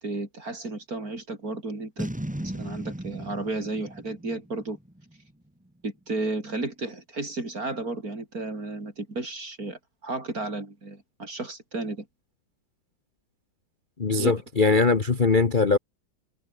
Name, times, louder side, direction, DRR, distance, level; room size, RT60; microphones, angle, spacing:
voice 1, 0.0-2.1 2.4-4.8 5.8-12.1 14.2-14.3, right 2 dB, 45° right, 5.4 m, -33 dB
Boom, 2.0-5.3, right 1 dB, 5° right, 1.5 m, -36 dB
voice 2, 14.0-15.8, left 4 dB, 30° left, 1.2 m, -21 dB
omnidirectional pair, 2.1 m